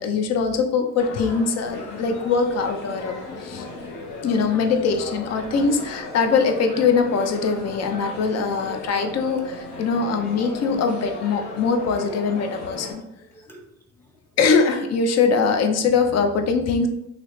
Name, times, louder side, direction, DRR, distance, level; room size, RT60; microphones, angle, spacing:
voice 1, 0.0-3.7 4.2-13.0 14.4-16.9, left 5 dB, 60° left, 5 dB, 0.5 m, -22 dB
sound 1, 1.0-12.9, left 2 dB, 90° left, 0.8 m, -36 dB
voice 2, 3.4-4.4 5.3-5.4 10.0-10.1 13.2-14.2, right 1 dB, 10° left, 1 dB, 0.5 m, -52 dB
3.1 x 2.8 x 3.0 m, 0.83 s
cardioid pair, 90°, 30 cm